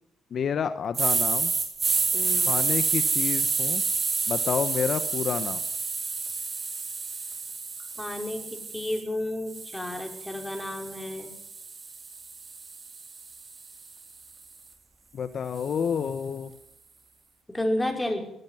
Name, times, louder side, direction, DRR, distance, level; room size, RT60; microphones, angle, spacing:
voice 1, 0.3-1.5 2.5-3.8 4.3-5.6 15.1-16.5, left 7 dB, 55° left, 11 dB, 1.2 m, -29 dB
sound 1, 0.9-9.0 9.5-13.7, right 4 dB, 35° right, 4.6 m, -29 dB
voice 2, 2.1-2.5 8.0-11.3 17.5-18.3, left 1 dB, 10° left, 3 dB, 5.6 m, -31 dB
20.5 x 13.5 x 9.2 m, 0.83 s
cardioid pair, 90°, 0 cm